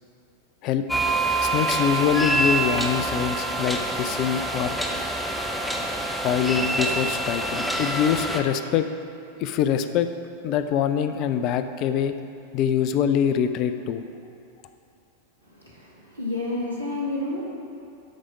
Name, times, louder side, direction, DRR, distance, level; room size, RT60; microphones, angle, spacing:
sound 1, 0.9-8.4, right 2 dB, 5° left, 0.7 m, -26 dB
voice 1, 1.4-4.8 6.2-8.9 9.4-10.1 10.4-12.1 12.5-14.0, left 8 dB, 40° left, 10 dB, 0.4 m, -24 dB
voice 2, 15.5-17.4, left 2 dB, 80° right, -4 dB, 1.9 m, -30 dB
12.5 x 4.9 x 5.0 m, 2.6 s
figure-of-eight pair, 90°, 0 cm